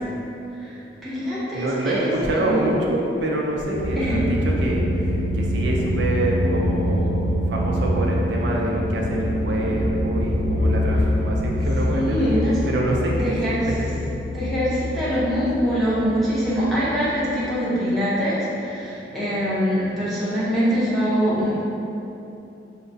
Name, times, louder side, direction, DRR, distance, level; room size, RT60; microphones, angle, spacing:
voice 1, 0.6-2.1 2.3-2.6 4.0-4.2 11.9-12.5 13.2-13.6 14.3-21.6, equal, ahead, -11 dB, 0.7 m, -23 dB
voice 2, 1.5-12.3 12.7-13.3, right 1 dB, 75° right, -2 dB, 0.4 m, -26 dB
sound 1, 3.7-17.4, equal, 45° left, 0.4 m, -25 dB
4.4 x 2.1 x 2.6 m, 2.9 s
head